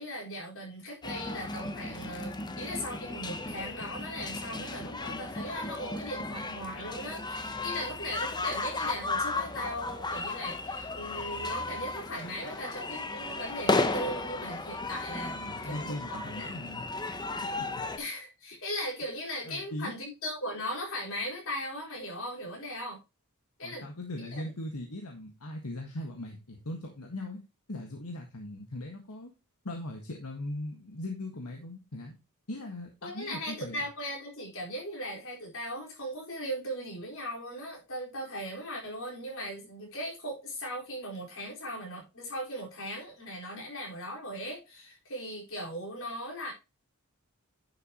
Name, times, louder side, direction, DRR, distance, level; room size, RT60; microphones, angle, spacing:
voice 1, 0.0-16.5 18.0-23.0 23.6-23.8 33.0-46.5, equal, 65° left, -1 dB, 4.6 m, -38 dB
sound 1, 1.0-18.0, left 3 dB, 20° left, 0.9 m, -35 dB
voice 2, 15.3-16.9 17.7-17.8 19.4-19.9 23.6-27.4 27.7-29.3 29.6-32.2 32.5-33.8, left 1 dB, 85° left, 1 dB, 1.8 m, -39 dB
10.5 x 6.9 x 3.0 m, 0.26 s
head